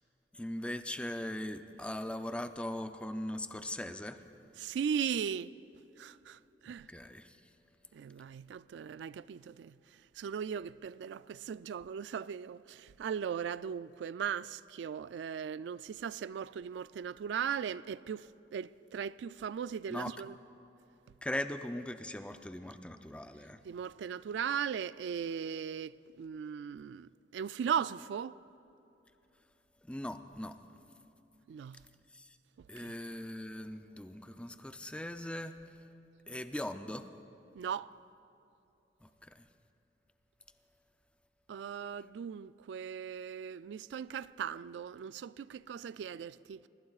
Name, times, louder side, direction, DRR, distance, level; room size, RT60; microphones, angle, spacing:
voice 1, 0.3-4.2 6.7-7.4 19.9-20.1 21.2-23.6 29.8-30.6 32.1-32.3 32.7-35.6 36.3-37.1 39.0-39.5, left 1 dB, 5° left, 0.5 m, -40 dB
voice 2, 4.6-5.5 6.0-6.9 7.9-9.8 10.2-20.3 23.6-28.4 31.5-31.8 32.6-32.9 37.6-37.9 41.5-46.6, right 7 dB, 85° right, 0.3 m, -38 dB
24.5 x 20.5 x 2.4 m
head